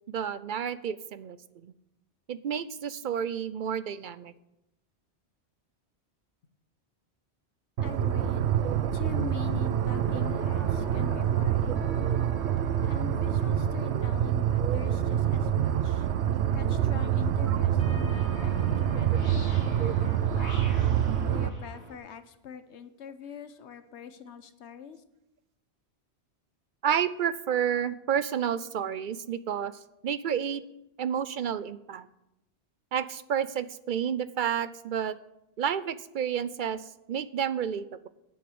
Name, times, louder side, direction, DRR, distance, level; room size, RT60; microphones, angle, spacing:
voice 1, 0.1-1.4 1.6-1.7 2.3-4.3 8.6-8.8 12.0-12.2 13.9-14.1 14.5-15.0 17.5-17.8 19.8-19.9 26.8-29.7 30.0-30.6 31.0-32.1 32.9-35.2 35.6-38.1, right 8 dB, 60° right, 15 dB, 0.6 m, -31 dB
voice 2, 7.8-8.5 8.9-11.8 12.8-16.1 16.5-20.6 21.2-25.0, left 7 dB, 80° left, 10 dB, 1.2 m, -43 dB
sound 1, 7.8-21.5, right 10 dB, 85° right, 0.9 m, -26 dB
sound 2, 9.9-22.0, equal, 35° left, 3.4 m, -44 dB
9.4 x 7.2 x 7.8 m, 0.86 s
omnidirectional pair, 1.1 m